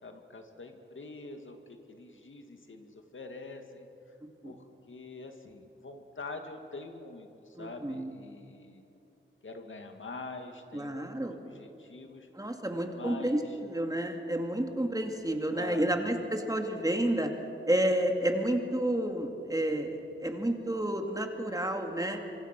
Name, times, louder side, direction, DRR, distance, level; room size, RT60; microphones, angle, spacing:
voice 1, 0.0-3.9 4.4-8.8 9.4-12.3 12.9-13.4 15.5-15.9, left 3 dB, 70° left, 5 dB, 2.2 m, -45 dB
voice 2, 7.6-8.1 10.7-11.4 12.3-17.3 17.7-22.2, right 1 dB, 15° right, 4 dB, 2.3 m, -30 dB
25.5 x 25.5 x 6.1 m, 2.9 s
wide cardioid pair, 85°, 21 cm